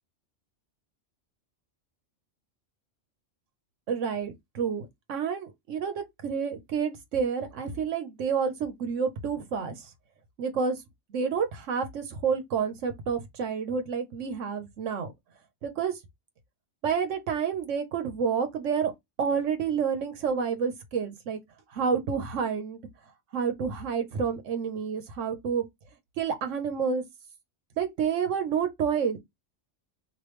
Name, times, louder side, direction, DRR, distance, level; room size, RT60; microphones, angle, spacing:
voice 1, 3.9-9.9 10.4-10.8 11.1-15.1 15.6-16.0 16.8-18.9 19.2-21.4 21.7-22.8 23.3-25.6 26.2-27.0 27.8-29.2, right 6 dB, 90° right, 1.1 m, -29 dB
3.1 x 2.7 x 3.2 m
omnidirectional pair, 1.3 m